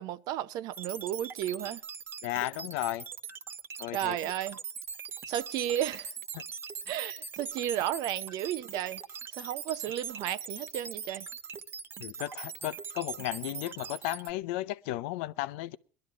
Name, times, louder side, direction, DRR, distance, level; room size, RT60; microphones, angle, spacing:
voice 1, 0.0-1.8 3.9-4.6 5.3-6.1 6.9-9.0 9.3-11.3, right 12 dB, 60° right, 0.7 m, -33 dB
sound 1, 0.7-14.3, right 6 dB, 35° right, 1.3 m, -41 dB
voice 2, 2.2-3.1 3.8-4.2 12.0-15.8, left 16 dB, 80° left, 0.7 m, -34 dB
20.0 x 12.5 x 3.6 m
supercardioid pair, 115°, 7 cm